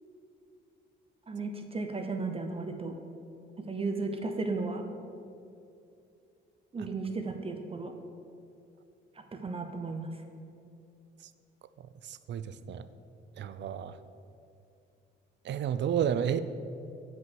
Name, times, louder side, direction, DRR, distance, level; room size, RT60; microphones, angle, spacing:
voice 1, 1.3-3.0 3.6-4.8 6.7-7.9 9.2-10.1, right 3 dB, 30° right, 5 dB, 0.8 m, -35 dB
voice 2, 12.1-12.8 13.4-13.9 15.5-16.4, right 9 dB, 65° right, 13 dB, 0.5 m, -31 dB
9.1 x 5.3 x 7.7 m, 2.6 s
cardioid pair, 90°, 20 cm